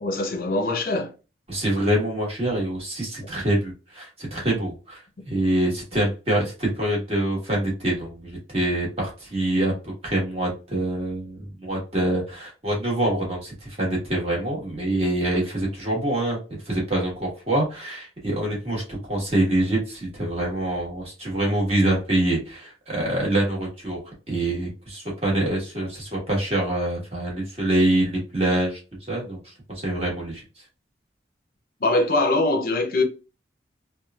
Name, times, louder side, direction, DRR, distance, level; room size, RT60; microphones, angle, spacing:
voice 1, 0.0-1.1 3.2-3.3 5.9-6.0 31.8-33.0, left 2 dB, 50° left, 0.5 m, -23 dB
voice 2, 1.5-5.0 5.3-24.0 24.3-28.8 29.1-30.4, right 1 dB, 35° right, 1.2 m, -25 dB
3.0 x 2.2 x 2.3 m
head